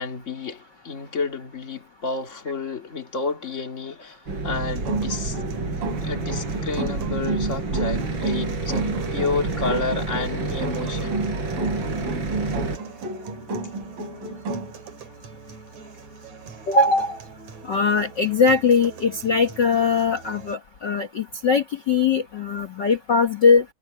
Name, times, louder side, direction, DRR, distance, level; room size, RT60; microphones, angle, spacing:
voice 1, 0.0-5.4 6.0-11.3, left 3 dB, 25° left, 2.1 m, -30 dB
sound 1, 4.3-12.8, right 3 dB, 30° right, 5.0 m, -29 dB
sound 2, 4.5-20.5, right 5 dB, 55° right, 3.5 m, -42 dB
sound 3, 4.8-14.8, right 3 dB, 80° right, 5.9 m, -31 dB
voice 2, 16.7-17.2 17.7-23.6, left 4 dB, 70° left, 1.0 m, -20 dB
omnidirectional pair, 4.0 m